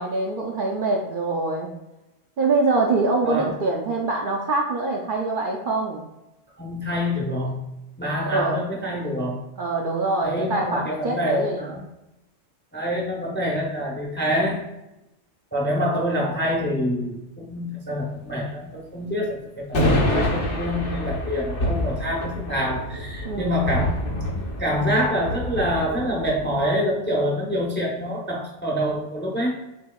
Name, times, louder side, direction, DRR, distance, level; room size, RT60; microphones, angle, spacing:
voice 1, 0.0-1.7 2.4-6.1 8.2-8.6 9.6-11.7 23.2-23.6, right 3 dB, 60° right, 0 dB, 0.6 m, -24 dB
voice 2, 6.6-7.6 8.0-9.4 10.2-11.8 12.7-14.7 15.5-24.0 24.6-29.5, equal, 15° left, -2 dB, 0.5 m, -26 dB
sound 1, 19.7-26.5, left 1 dB, 70° left, 1.3 m, -26 dB
6.7 x 2.8 x 2.3 m, 0.93 s
omnidirectional pair, 1.2 m